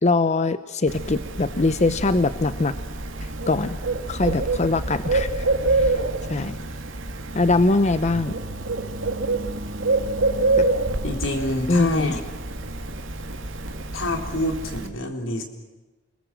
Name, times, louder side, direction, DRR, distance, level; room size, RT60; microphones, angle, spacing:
voice 1, 0.0-2.7 3.2-3.8 4.1-5.9 6.3-6.6 7.3-8.3 10.6-10.7 11.7-12.1, left 3 dB, 35° left, 12 dB, 0.7 m, -22 dB
Bird, 0.9-14.9, right 2 dB, 80° right, 2.4 m, -27 dB
voice 2, 11.0-12.2 13.9-15.4, left 1 dB, 85° left, 4 dB, 4.0 m, -27 dB
29.0 x 21.0 x 7.6 m, 1.1 s
head